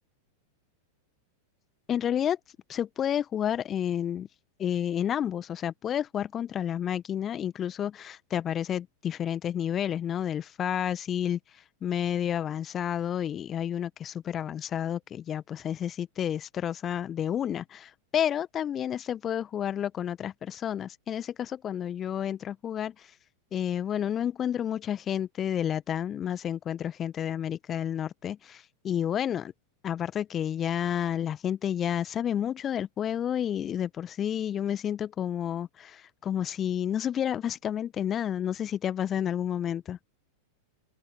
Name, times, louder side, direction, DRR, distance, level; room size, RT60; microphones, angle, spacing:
voice 1, 1.9-2.4 2.7-4.3 4.6-11.4 11.8-23.1 23.5-29.5 29.8-40.0, left 9 dB, 25° left, 1.6 m, -30 dB
open air
figure-of-eight pair, 90°, 0 cm